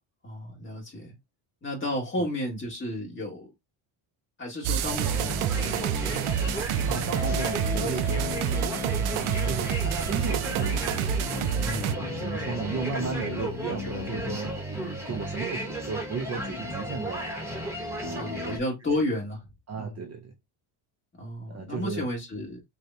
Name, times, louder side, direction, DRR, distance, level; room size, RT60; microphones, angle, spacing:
voice 1, 0.2-1.1 1.6-3.5 4.4-6.7 7.3-8.5 11.6-12.2 18.1-19.5 19.8-20.1 21.2-22.6, left 1 dB, 25° left, 2.0 m, -33 dB
sound 1, 4.6-11.9, right 9 dB, 85° right, 0.5 m, -28 dB
sound 2, 4.8-18.6, equal, 5° right, 1.2 m, -34 dB
sound 3, 6.8-14.4, left 10 dB, 70° left, 0.6 m, -41 dB
voice 2, 6.9-8.6 9.1-10.8 11.7-17.3 18.0-18.6 19.7-20.3 21.5-22.1, right 5 dB, 35° right, 0.6 m, -35 dB
6.5 x 2.4 x 2.7 m
cardioid pair, 135°, 47 cm